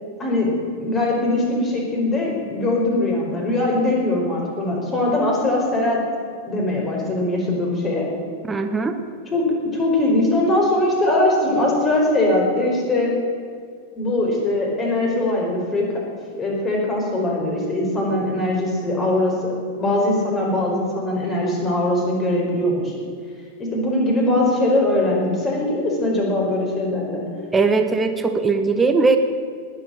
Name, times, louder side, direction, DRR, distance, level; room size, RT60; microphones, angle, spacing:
voice 1, 0.2-0.5 0.8-6.0 6.5-8.1 9.3-9.4 9.7-13.1 14.0-15.8 16.4-22.9 23.6-27.2, left 1 dB, 25° left, -2 dB, 4.9 m, -21 dB
voice 2, 8.5-9.0 27.5-29.2, right 4 dB, 15° right, 7 dB, 1.1 m, -19 dB
19.5 x 7.7 x 7.5 m, 2.1 s
figure-of-eight pair, 90°, 0 cm